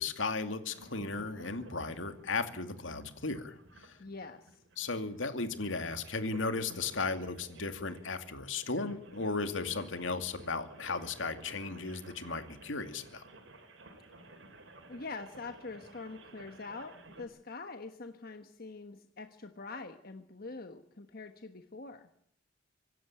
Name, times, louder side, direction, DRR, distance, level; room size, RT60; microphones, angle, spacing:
voice 1, 0.0-4.0 4.8-13.2, left 3 dB, 75° left, 8 dB, 2.4 m, -36 dB
sound 1, 0.7-17.2, right 2 dB, 75° right, 4.7 m, -54 dB
voice 2, 4.0-4.6 14.2-14.3 14.9-22.0, left 3 dB, 50° left, 7 dB, 1.3 m, -44 dB
25.0 x 12.5 x 8.9 m, 0.70 s
head